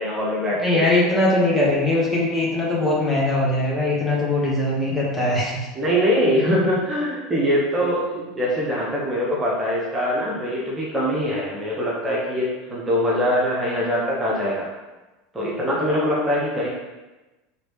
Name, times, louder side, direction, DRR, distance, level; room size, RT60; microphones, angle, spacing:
voice 1, 0.0-0.9 5.8-14.7 15.3-16.7, equal, 15° right, -6 dB, 0.8 m, -23 dB
voice 2, 0.6-5.7, left 2 dB, 10° left, -6 dB, 1.0 m, -21 dB
3.2 x 3.0 x 2.9 m, 1.1 s
figure-of-eight pair, 75°, 0 cm